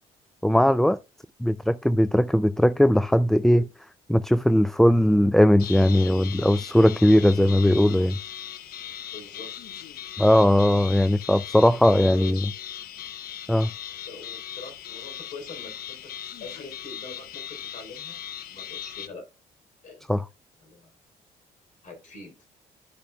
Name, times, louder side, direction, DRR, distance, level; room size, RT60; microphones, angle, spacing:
voice 1, 0.4-1.0 1.4-3.7 4.1-8.2 10.2-12.4 13.5-13.7 20.1-20.2, equal, ahead, 0.3 m, -19 dB
sound 1, 5.6-19.1, left 10 dB, 70° left, 0.7 m, -39 dB
voice 2, 9.1-9.5 10.2-10.5 11.8-12.3 14.0-16.1 16.4-18.2 18.4-19.3 19.8-20.1 20.6-20.9 21.8-22.4, left 2 dB, 55° left, 3.8 m, -42 dB
11.5 x 6.3 x 2.3 m
supercardioid pair, 70°, 16 cm